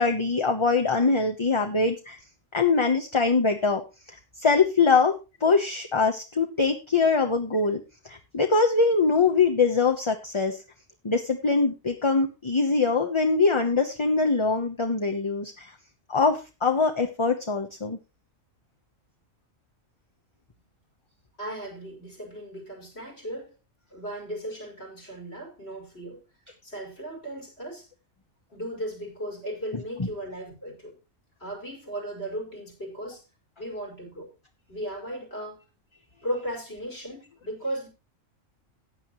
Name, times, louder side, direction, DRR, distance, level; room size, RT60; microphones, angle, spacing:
voice 1, 0.0-2.2 2.5-3.8 4.1-5.1 5.4-7.8 8.0-10.6 11.0-15.7 16.1-18.0 30.0-30.1, left 4 dB, 25° left, 0.8 m, -23 dB
voice 2, 21.4-23.5 23.9-26.2 26.6-27.9 28.5-31.0 31.4-33.2 33.6-34.3 34.7-35.7 36.2-37.9, right 1 dB, 50° left, 6.0 m, -36 dB
15.0 x 9.4 x 3.0 m
omnidirectional pair, 1.4 m